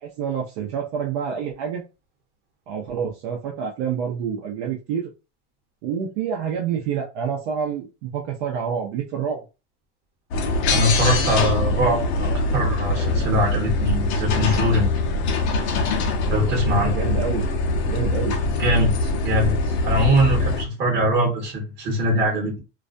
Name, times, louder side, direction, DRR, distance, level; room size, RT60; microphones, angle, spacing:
voice 1, 0.0-1.8 2.7-5.1 5.8-9.4 16.5-17.5 17.9-18.4, right 7 dB, 55° right, 0 dB, 0.6 m, -28 dB
sound 1, 10.3-20.6, left 2 dB, 60° left, 0.7 m, -23 dB
voice 2, 10.7-14.9 16.3-16.9 18.4-22.6, equal, 30° right, -1 dB, 1.0 m, -22 dB
2.4 x 2.1 x 2.5 m, 0.29 s
supercardioid pair, 150°, 37 cm